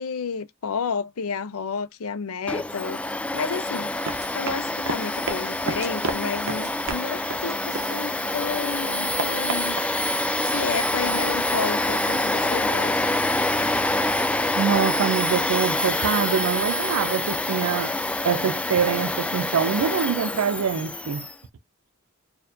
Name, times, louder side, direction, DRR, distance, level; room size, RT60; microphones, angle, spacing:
voice 1, 0.0-3.0 3.3-3.9 4.3-10.0 10.4-13.2, left 5 dB, 75° left, 0.6 m, -31 dB
Domestic sounds home sounds, 2.5-21.3, left 1 dB, 5° left, 0.3 m, -26 dB
Run, 3.9-8.4 8.7-10.6, right 3 dB, 65° right, 0.8 m, -34 dB
voice 2, 14.6-17.9 18.2-21.3, right 7 dB, 85° right, 0.4 m, -24 dB
4.3 x 2.6 x 2.5 m
head